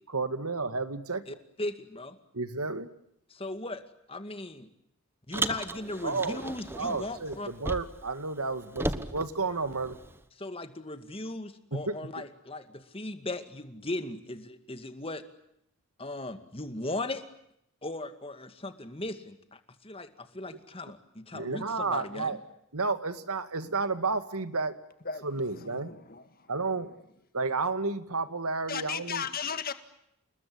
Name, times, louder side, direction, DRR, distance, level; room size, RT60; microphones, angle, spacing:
voice 1, 0.1-1.2 2.3-2.9 5.4-5.5 6.0-6.4 6.7-10.0 11.7-12.2 21.3-22.4 22.7-24.7 25.2-25.9 26.5-26.9 27.3-29.3, right 3 dB, 85° right, 2.2 m, -31 dB
voice 2, 1.3-2.2 3.3-3.8 4.1-4.7 5.3-7.5 10.4-15.2 16.0-17.2 17.8-22.4, left 2 dB, 25° left, 2.1 m, -38 dB
Car, 5.3-8.1 8.4-10.2, right 1 dB, 10° right, 1.1 m, -36 dB
voice 3, 25.7-26.2 28.7-29.7, left 6 dB, 40° left, 1.9 m, -35 dB
29.5 x 20.5 x 9.6 m
head